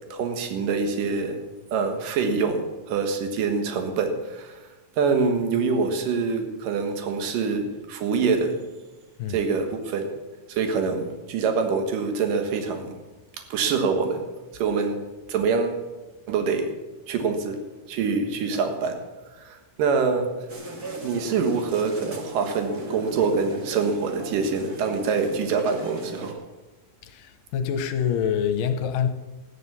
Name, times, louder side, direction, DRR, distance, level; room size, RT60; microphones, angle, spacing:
voice 1, 0.1-1.4 1.7-4.6 5.0-8.6 9.3-10.2 10.5-13.0 13.5-14.3 14.6-15.8 16.3-16.8 17.1-17.6 17.9-19.0 19.4-20.3 21.0-26.4, right 5 dB, 75° right, 3.1 m, -25 dB
sound 1, 20.5-26.3, right 1 dB, 35° right, 1.7 m, -38 dB
voice 2, 27.0-29.1, left 8 dB, 75° left, 2.5 m, -26 dB
14.5 x 10.0 x 6.9 m
omnidirectional pair, 3.9 m